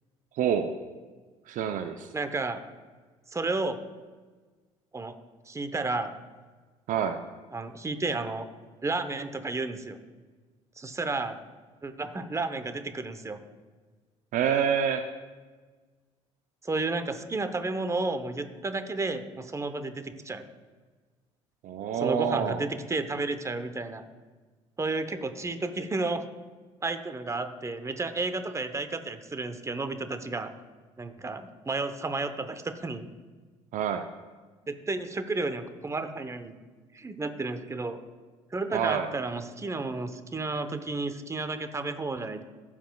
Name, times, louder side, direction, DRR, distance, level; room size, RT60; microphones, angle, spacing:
voice 1, 0.4-0.8 1.5-2.1 6.9-7.2 14.3-15.0 21.6-22.6 33.7-34.1 38.7-39.1, right 8 dB, 55° right, 8 dB, 0.6 m, -27 dB
voice 2, 2.1-2.6 3.3-3.8 4.9-5.1 5.5-6.1 7.5-8.5 8.8-10.0 10.8-11.4 11.8-13.4 16.6-20.4 22.0-24.0 24.8-26.2 26.8-30.5 31.0-33.1 34.7-36.5 36.9-38.0 38.5-42.4, right 3 dB, 20° right, 10 dB, 0.9 m, -32 dB
15.5 x 7.3 x 2.3 m, 1.4 s
hypercardioid pair, 60°, 16 cm